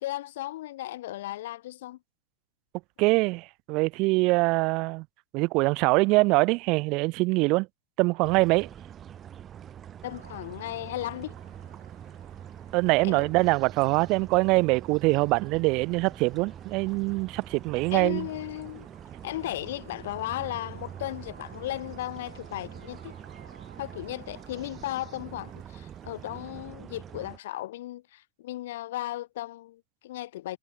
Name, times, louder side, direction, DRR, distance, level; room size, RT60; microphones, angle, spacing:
voice 1, 0.0-2.0 10.0-11.4 13.0-13.3 17.9-18.9 19.2-23.1 23.8-30.6, left 15 dB, 55° left, 0.6 m, -36 dB
voice 2, 3.0-5.0 5.3-7.7 8.0-8.7 12.7-18.3, right 25 dB, 40° right, 0.6 m, -24 dB
sound 1, 8.2-27.4, right 9 dB, 25° right, 3.1 m, -44 dB
sound 2, 10.0-26.4, right 4 dB, 75° right, 6.1 m, -58 dB
figure-of-eight pair, 90°, 0 cm